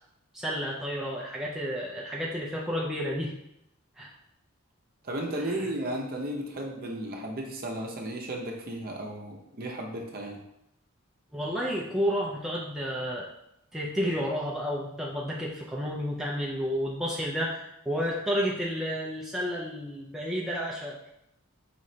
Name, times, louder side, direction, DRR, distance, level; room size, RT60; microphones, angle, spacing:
voice 1, 0.3-3.3 4.0-4.1 5.4-5.7 11.3-13.3 13.7-21.0, equal, ahead, -4 dB, 0.4 m, -31 dB
voice 2, 5.0-10.4, right 1 dB, 45° right, 0 dB, 0.7 m, -34 dB
4.9 x 3.1 x 2.7 m, 0.82 s
head